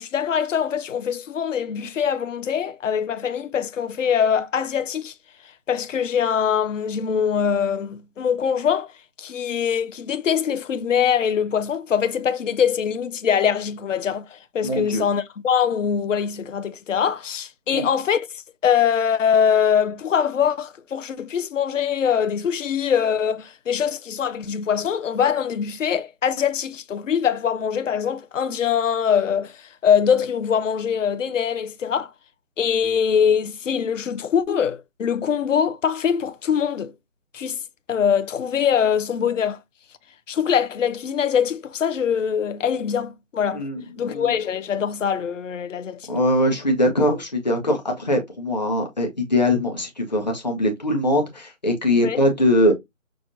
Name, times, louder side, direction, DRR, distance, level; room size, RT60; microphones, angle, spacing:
voice 1, 0.0-5.1 5.7-8.9 9.2-18.3 18.6-32.1 32.6-36.9 37.3-37.6 37.9-39.6 40.3-43.6 44.0-46.1 52.0-52.2, left 7 dB, 65° left, 0.6 m, -23 dB
voice 2, 14.6-15.0 17.7-17.9 43.5-44.3 46.1-52.7, left 1 dB, 30° left, 0.9 m, -22 dB
6.0 x 2.2 x 2.5 m
hypercardioid pair, 180°, 40 cm